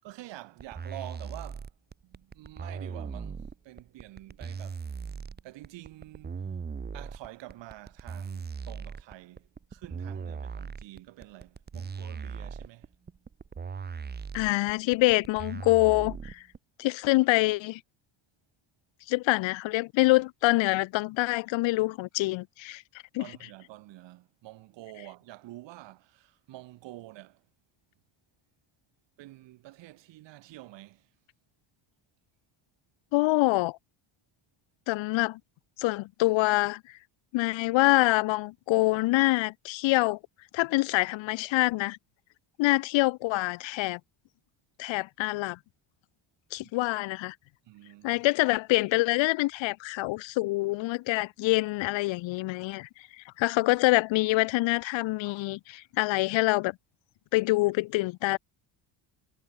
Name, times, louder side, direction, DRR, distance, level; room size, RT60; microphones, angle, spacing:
voice 1, 0.0-1.7 2.0-6.5 6.9-12.9 23.2-27.5 29.2-31.1 46.6-46.7 47.6-48.2, right 16 dB, 65° right, 7.3 m, -48 dB
sound 1, 0.6-16.6, right 6 dB, 20° right, 2.3 m, -39 dB
voice 2, 14.3-16.4 16.8-17.8 19.1-22.8 23.1-23.2 33.1-33.8 34.9-35.4 35.8-36.8 37.3-40.2 40.5-42.0 42.6-44.0 44.8-45.6 46.5-47.3 48.0-52.9 53.2-56.7 57.3-58.4, left 20 dB, 70° left, 1.3 m, -25 dB
cardioid pair, 160°, 46 cm